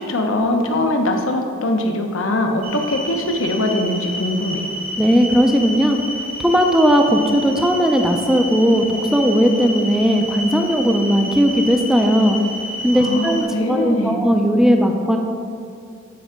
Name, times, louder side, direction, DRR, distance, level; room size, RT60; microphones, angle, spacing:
voice 1, 0.0-4.7 12.9-14.2, left 1 dB, 70° left, 3 dB, 0.9 m, -22 dB
sound 1, 2.6-13.4, equal, 90° right, 2.1 m, -30 dB
voice 2, 5.0-6.0 6.4-12.4 12.8-15.2, equal, 5° right, 3 dB, 0.5 m, -17 dB
9.1 x 4.5 x 5.1 m, 2.5 s
head